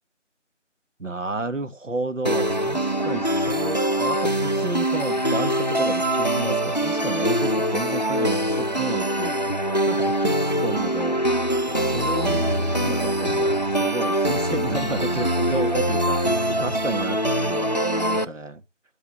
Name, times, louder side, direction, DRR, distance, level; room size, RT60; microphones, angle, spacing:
voice 1, 1.0-9.3 9.8-11.4 11.7-16.3 16.6-18.6, right 2 dB, 80° right, 1.6 m, -32 dB
sound 1, 2.2-18.2, right 1 dB, 35° left, 0.6 m, -23 dB
12.0 x 7.4 x 6.8 m
figure-of-eight pair, 175°, 37 cm